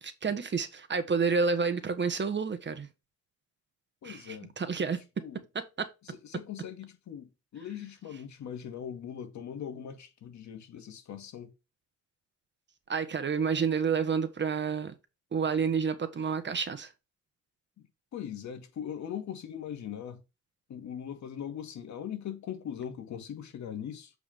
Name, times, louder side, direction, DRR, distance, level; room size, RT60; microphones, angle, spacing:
voice 1, 0.0-2.9 4.0-5.0 5.5-5.9 12.9-14.9 15.3-16.9, right 5 dB, 35° right, 1.6 m, -29 dB
voice 2, 4.0-4.5 4.9-5.4 6.2-11.5 17.8-17.9 18.1-20.2 20.7-24.1, left 9 dB, 65° left, 2.3 m, -40 dB
8.1 x 4.9 x 3.7 m
cardioid pair, 90°, 30 cm